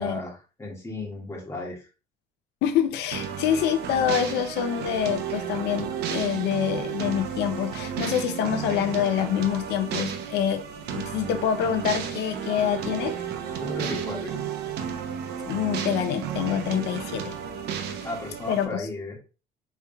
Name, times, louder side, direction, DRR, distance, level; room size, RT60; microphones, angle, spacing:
voice 1, 0.0-1.8 13.6-14.5 18.0-19.2, left 1 dB, 15° left, -1 dB, 1.6 m, -34 dB
voice 2, 2.6-10.6 10.9-13.1 15.4-17.3 18.5-18.9, left 9 dB, 85° left, 9 dB, 0.5 m, -26 dB
sound 1, 3.1-18.7, right 8 dB, 75° right, 0.8 m, -32 dB
4.7 x 3.3 x 2.2 m, 0.33 s
cardioid pair, 110°, 17 cm